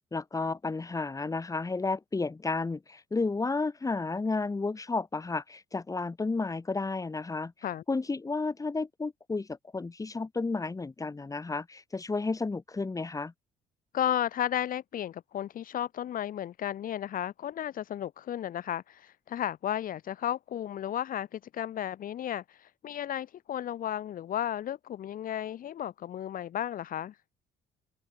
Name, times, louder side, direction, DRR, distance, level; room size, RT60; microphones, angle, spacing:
voice 1, 0.1-7.5 7.9-13.3, left 3 dB, 20° left, 7.3 m, -32 dB
voice 2, 13.9-27.2, left 11 dB, 55° left, 2.2 m, -34 dB
cardioid pair, 110°, 17 cm